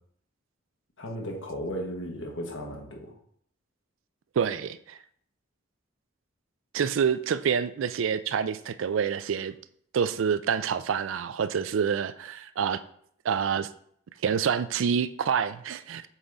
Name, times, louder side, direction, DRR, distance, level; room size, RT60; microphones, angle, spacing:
voice 1, 1.0-3.1, equal, 75° left, 0 dB, 1.4 m, -35 dB
voice 2, 4.4-5.0 6.7-9.5 9.9-12.8 13.2-13.7 14.2-16.1, right 7 dB, 75° right, 14 dB, 0.4 m, -27 dB
7.2 x 3.6 x 4.0 m, 0.64 s
head